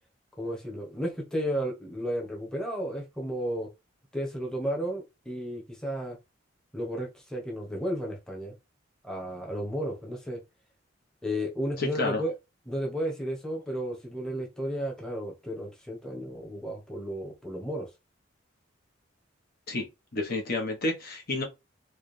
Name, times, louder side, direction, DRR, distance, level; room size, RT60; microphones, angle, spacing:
voice 1, 0.4-3.7 4.1-6.2 6.7-8.5 9.0-10.4 11.2-12.3 12.7-17.9, equal, 5° left, 1.1 m, -33 dB
voice 2, 11.8-12.2 19.7-19.9 20.1-21.4, left 2 dB, 50° left, 1.0 m, -30 dB
4.7 x 2.4 x 3.2 m
head